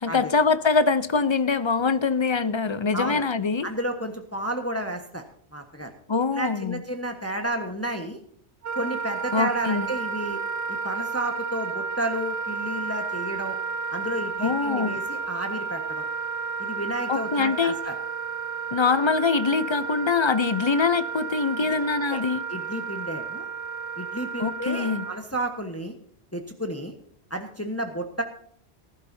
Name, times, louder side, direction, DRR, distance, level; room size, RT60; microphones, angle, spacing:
voice 1, 0.0-3.7 6.1-6.8 9.3-9.9 14.4-14.9 17.1-17.8 18.7-22.4 24.4-25.1, left 4 dB, 35° left, 13 dB, 0.5 m, -23 dB
voice 2, 3.6-5.2 5.5-5.9 6.3-8.2 8.7-10.4 10.7-13.6 13.9-16.0 16.6-17.9 21.6-21.8 22.1-22.2 22.5-23.5 24.0-25.9 26.3-26.9 27.3-28.2, right 1 dB, 15° left, 4 dB, 1.2 m, -32 dB
Wind instrument woodwind instrument, 8.6-25.2, right 5 dB, 65° right, 1.3 m, -32 dB
19.5 x 11.5 x 2.7 m, 0.62 s
omnidirectional pair, 1.1 m